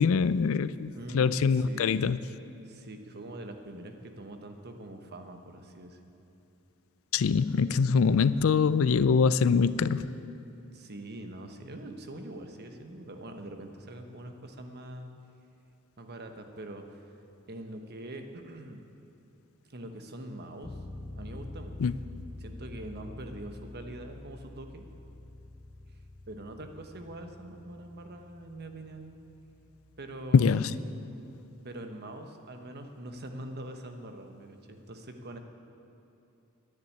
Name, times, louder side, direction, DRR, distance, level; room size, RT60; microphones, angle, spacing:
voice 1, 0.0-2.2 7.1-10.2 21.8-21.9 30.3-30.7, left 5 dB, 65° left, 0.4 m, -24 dB
voice 2, 0.9-1.9 2.6-6.1 10.7-15.1 16.0-17.1 17.5-18.8 19.7-20.8 21.1-21.9 22.4-24.8 26.3-29.1 30.0-30.5 31.6-35.4, right 1 dB, 50° right, 1.1 m, -43 dB
sound 1, 20.6-30.4, left 2 dB, 25° left, 0.8 m, -46 dB
10.5 x 10.0 x 9.5 m
head